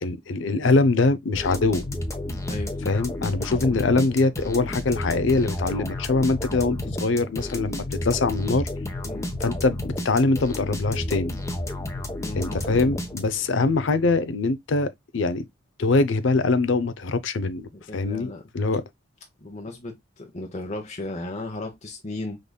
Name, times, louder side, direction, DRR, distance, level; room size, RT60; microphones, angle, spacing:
voice 1, 0.0-1.8 2.8-8.7 9.4-11.3 12.3-15.5 15.8-18.8, left 3 dB, 70° left, 0.6 m, -23 dB
sound 1, 1.4-13.6, left 1 dB, 15° left, 0.9 m, -31 dB
voice 2, 12.2-12.7 17.7-18.4 19.4-22.4, left 2 dB, 35° left, 1.0 m, -35 dB
5.1 x 3.9 x 2.2 m
head